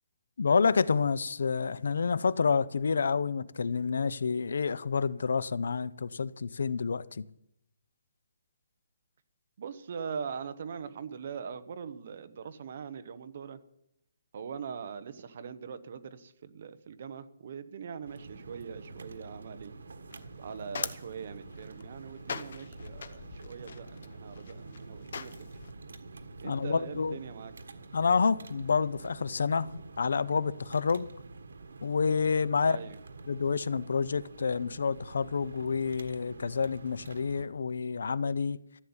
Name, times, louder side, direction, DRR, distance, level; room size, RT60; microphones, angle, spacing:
voice 1, 0.4-7.2 26.4-27.2 27.9-31.1 31.8-32.8 33.3-38.6, left 5 dB, 60° left, 0.6 m, -28 dB
voice 2, 9.6-13.6 14.3-19.7 20.4-25.5 26.4-27.5 32.6-33.0, right 6 dB, 35° right, 0.9 m, -42 dB
sound 1, 18.0-37.5, right 3 dB, 90° right, 1.6 m, -47 dB
sound 2, 20.1-25.7, left 5 dB, 45° left, 0.9 m, -42 dB
14.5 x 7.2 x 9.6 m
hypercardioid pair, 180°, 0 cm